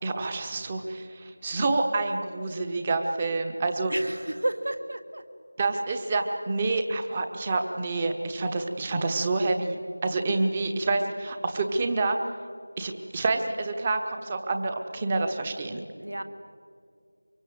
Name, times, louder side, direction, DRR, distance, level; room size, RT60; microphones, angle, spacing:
voice 1, 0.0-3.9 5.6-12.2 12.8-15.8, right 3 dB, 15° right, 6 dB, 1.1 m, -28 dB
voice 2, 3.9-5.2 16.0-16.2, right 1 dB, 55° right, 9 dB, 1.7 m, -31 dB
24.5 x 23.0 x 7.9 m, 2.2 s
figure-of-eight pair, 170°, 0 cm